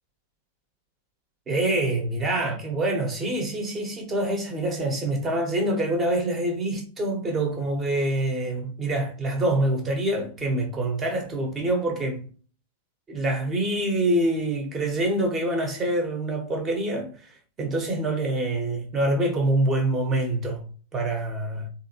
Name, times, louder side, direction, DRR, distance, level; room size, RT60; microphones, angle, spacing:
voice 1, 1.5-12.3 13.1-21.7, right 1 dB, 25° right, 1.3 m, -26 dB
3.4 x 2.7 x 2.9 m
figure-of-eight pair, 95°, 0 cm